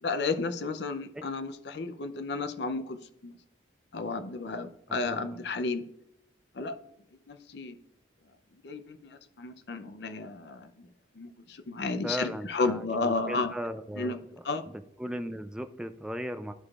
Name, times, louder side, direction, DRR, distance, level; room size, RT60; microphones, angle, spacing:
voice 1, 0.0-3.0 3.2-3.4 3.9-5.8 6.5-6.8 7.3-7.8 8.6-10.9 11.2-13.5 14.0-14.2 14.4-14.6, left 3 dB, 60° left, 9 dB, 0.6 m, -32 dB
voice 2, 4.9-5.4 12.0-14.2 14.7-16.5, equal, 5° right, 8 dB, 0.3 m, -37 dB
12.0 x 4.8 x 2.4 m, 0.82 s
head